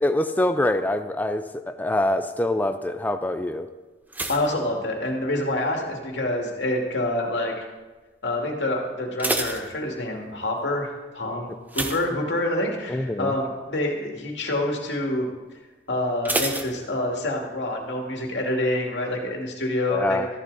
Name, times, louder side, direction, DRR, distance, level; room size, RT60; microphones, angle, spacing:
voice 1, 0.0-3.7 12.9-13.3 19.9-20.3, left 1 dB, 10° left, 8 dB, 0.4 m, -24 dB
sound 1, 4.1-5.6 5.8-6.4 7.0-7.3 7.6-7.7 8.1-8.2 8.9-10.4 11.7-12.8 13.2-13.4 13.8-13.9 16.2-17.5 17.7-17.8, right 2 dB, 10° right, 0.8 m, -30 dB
voice 2, 4.3-7.6 8.2-15.3 15.9-20.2, left 1 dB, 85° left, 1 dB, 2.3 m, -27 dB
14.0 x 11.5 x 4.1 m, 1.2 s
head